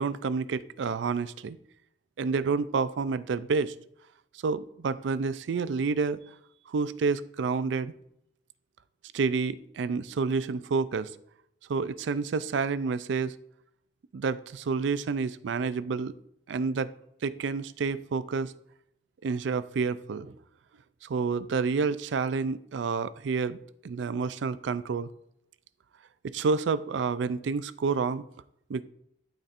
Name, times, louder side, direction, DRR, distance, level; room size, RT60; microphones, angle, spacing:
voice 1, 0.0-1.6 2.2-3.7 4.4-6.2 6.7-7.9 9.1-11.1 11.7-13.3 14.1-16.2 16.5-16.9 17.2-18.5 19.2-20.4 21.0-23.6 23.8-25.1 26.2-28.2 28.7-28.8, right 4 dB, 70° right, 15 dB, 0.4 m, -29 dB
12.0 x 4.2 x 2.5 m, 0.73 s
head